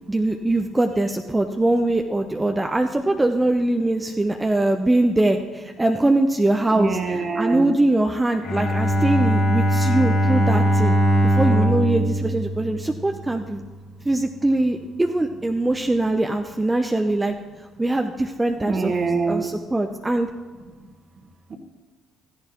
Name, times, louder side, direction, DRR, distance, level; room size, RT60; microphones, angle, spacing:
voice 1, 0.1-11.0 11.2-13.6 14.0-17.3 17.8-19.0 19.3-20.3, right 2 dB, 15° right, 4 dB, 0.7 m, -22 dB
voice 2, 6.7-7.7 18.6-19.5, right 4 dB, 45° right, 6 dB, 1.4 m, -24 dB
Bowed string instrument, 8.4-13.4, equal, 75° left, 3.0 m, -20 dB
14.0 x 10.5 x 3.0 m, 1.4 s
hypercardioid pair, 55°, 0 cm